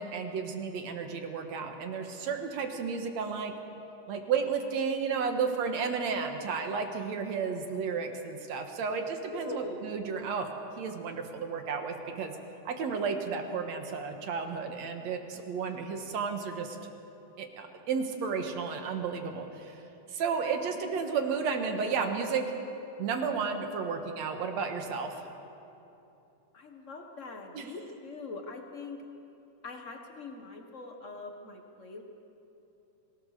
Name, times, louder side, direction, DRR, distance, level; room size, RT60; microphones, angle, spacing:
voice 1, 0.0-3.5 4.1-10.5 10.8-12.4 12.7-16.8 17.4-19.8 20.1-22.4 23.0-25.3 27.5-27.7, right 5 dB, 60° right, 5 dB, 2.5 m, -32 dB
voice 2, 9.3-9.9 26.5-29.0 29.6-32.0, left 3 dB, 45° left, 3 dB, 1.0 m, -42 dB
26.0 x 17.0 x 6.7 m, 2.8 s
omnidirectional pair, 3.7 m